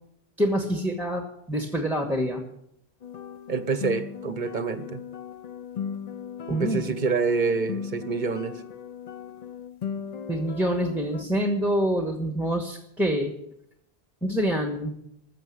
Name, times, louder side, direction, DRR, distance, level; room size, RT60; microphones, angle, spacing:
voice 1, 0.4-2.4 6.5-7.0 10.3-13.3 14.2-14.9, equal, ahead, 1.2 m, -26 dB
sound 1, 3.0-11.2, left 7 dB, 45° left, 0.6 m, -37 dB
voice 2, 3.5-5.0 6.5-8.6, right 4 dB, 50° right, 0.8 m, -27 dB
14.5 x 6.7 x 9.3 m
omnidirectional pair, 1.1 m